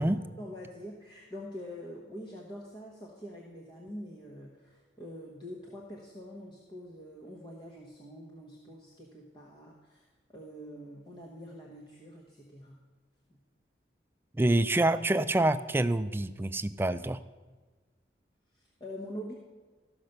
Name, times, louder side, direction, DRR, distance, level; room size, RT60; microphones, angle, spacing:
voice 1, 0.4-12.8 18.5-19.3, equal, 25° left, -2 dB, 1.2 m, -45 dB
voice 2, 14.3-17.2, right 1 dB, 10° right, 12 dB, 0.3 m, -26 dB
13.5 x 5.8 x 6.6 m, 1.4 s
head